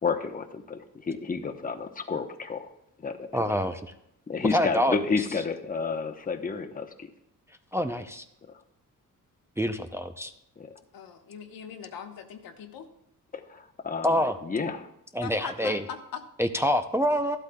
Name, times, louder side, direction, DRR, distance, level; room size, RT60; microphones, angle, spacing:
voice 1, 0.0-2.7 3.0-3.3 4.3-7.1 10.6-10.7 13.3-14.9, left 4 dB, 25° left, 6 dB, 0.9 m, -31 dB
voice 2, 3.3-3.8 4.5-5.0 7.7-8.2 9.6-10.3 14.0-14.4 15.1-15.8 16.4-17.4, equal, 10° right, 6 dB, 0.5 m, -26 dB
voice 3, 10.9-12.9 15.2-16.2, left 7 dB, 85° left, 6 dB, 1.1 m, -40 dB
14.0 x 12.0 x 2.3 m, 0.79 s
cardioid pair, 110°, 34 cm